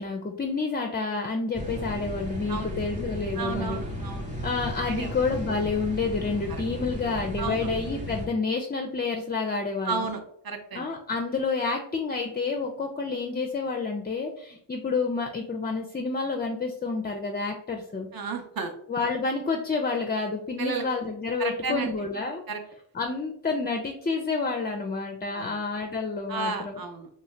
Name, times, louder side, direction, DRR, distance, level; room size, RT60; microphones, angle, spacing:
voice 1, 0.0-3.8 4.4-10.1 10.7-18.1 18.9-22.4 22.9-26.8, left 4 dB, 25° left, 3 dB, 0.3 m, -29 dB
sound 1, 1.5-8.3, equal, 15° right, 0.9 m, -35 dB
voice 2, 3.4-4.3 4.9-5.1 7.4-7.7 9.9-10.2 10.4-10.8 18.1-18.7 20.6-20.9 21.4-21.9 22.5-22.6 25.3-25.6 26.3-27.1, right 4 dB, 55° right, 5 dB, 0.6 m, -32 dB
2.7 x 2.2 x 3.1 m, 0.67 s
cardioid pair, 40°, 44 cm